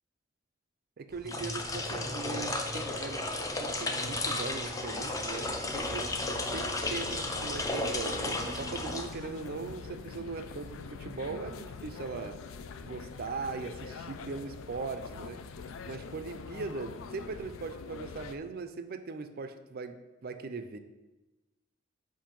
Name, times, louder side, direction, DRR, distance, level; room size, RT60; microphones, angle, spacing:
voice 1, 1.0-3.2 3.6-6.2 6.4-12.4 12.8-15.5 15.8-20.8, right 4 dB, 50° right, 9 dB, 0.4 m, -40 dB
sound 1, 1.1-9.6, left 2 dB, 15° left, 0.5 m, -33 dB
sound 2, 5.4-18.4, left 5 dB, 75° left, 0.4 m, -44 dB
7.4 x 2.6 x 5.2 m, 1.1 s
head